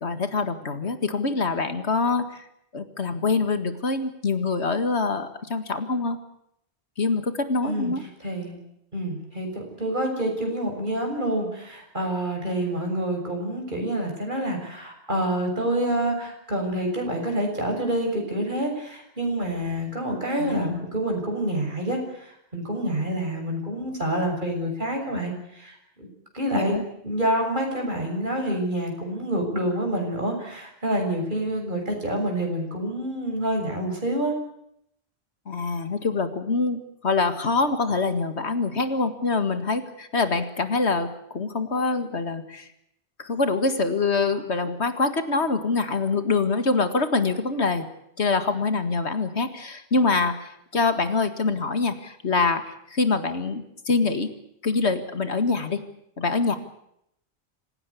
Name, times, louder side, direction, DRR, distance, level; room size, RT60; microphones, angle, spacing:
voice 1, 0.0-2.4 2.7-6.2 7.0-8.0 20.4-20.8 26.5-26.8 35.5-42.7 43.2-47.9 48.2-54.3 54.6-55.8 56.2-56.6, left 3 dB, 90° left, 9 dB, 2.2 m, -25 dB
voice 2, 8.2-8.6 8.9-26.1 26.3-34.3, right 1 dB, 45° right, 1 dB, 6.9 m, -27 dB
26.5 x 17.0 x 8.5 m, 0.75 s
omnidirectional pair, 1.1 m